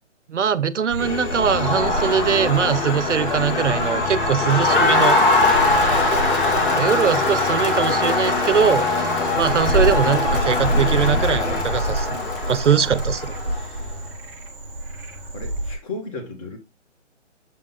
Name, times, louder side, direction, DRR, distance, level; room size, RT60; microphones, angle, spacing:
voice 1, 0.3-5.2 6.7-12.2 12.5-13.3, right 7 dB, 75° right, 0.8 m, -21 dB
Frog, 0.9-15.8, right 1 dB, 5° right, 0.7 m, -28 dB
sound 1, 1.0-11.6, left 6 dB, 75° left, 0.8 m, -30 dB
Crowd, 1.3-13.8, left 2 dB, 45° left, 1.8 m, -22 dB
voice 2, 15.3-16.6, left 3 dB, 30° left, 1.6 m, -34 dB
7.3 x 3.6 x 4.0 m
figure-of-eight pair, 150°, 36 cm